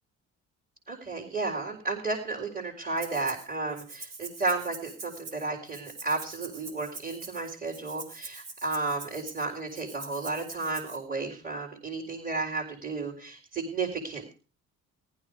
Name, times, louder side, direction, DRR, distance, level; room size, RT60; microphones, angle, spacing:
voice 1, 0.9-14.3, right 3 dB, 30° right, -3 dB, 3.9 m, -33 dB
Rattle (instrument), 3.0-3.5 3.8-11.0, right 3 dB, 55° right, 3.5 m, -44 dB
15.0 x 12.5 x 4.9 m, 0.36 s
cardioid pair, 90°, 30 cm